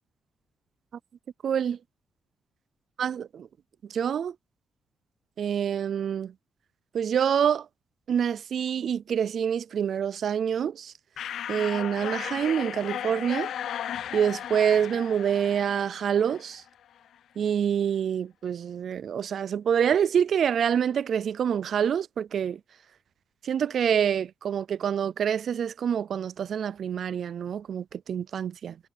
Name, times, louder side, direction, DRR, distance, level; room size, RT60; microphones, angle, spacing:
voice 1, 1.4-1.8 3.0-3.5 3.9-4.3 5.4-6.3 6.9-7.7 8.1-10.9 11.5-13.5 14.1-16.6 17.4-22.6 23.4-28.8, right 8 dB, 50° right, 0.4 m, -26 dB
sound 1, 11.2-16.7, left 10 dB, 70° left, 0.7 m, -35 dB
cardioid pair, 155°, 0 cm